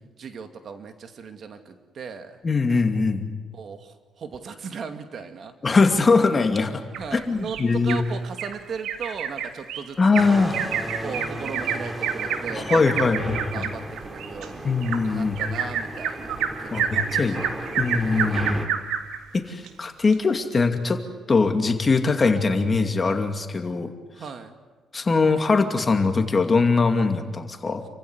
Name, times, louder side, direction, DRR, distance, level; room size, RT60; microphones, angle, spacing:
voice 1, 0.2-2.4 3.5-5.5 7.0-10.2 11.0-14.8 15.1-17.7 18.2-18.5 24.1-24.6, right 6 dB, 55° right, 7 dB, 2.3 m, -37 dB
voice 2, 2.4-3.3 5.6-6.8 7.1-8.0 10.0-10.5 12.5-13.7 14.6-15.4 16.7-17.4 17.8-18.6 19.3-21.0 21.3-23.9 24.9-27.9, left 4 dB, 30° left, 6 dB, 2.5 m, -21 dB
Bird vocalization bird call bird song, 6.9-8.0 8.4-8.5 8.8-19.2 19.7-19.8 20.1-20.2, right 8 dB, 85° right, 2.1 m, -29 dB
sound 1, 10.2-18.7, right 1 dB, 15° right, 2.7 m, -35 dB
28.5 x 15.5 x 9.7 m, 1.3 s
cardioid pair, 90°, 0 cm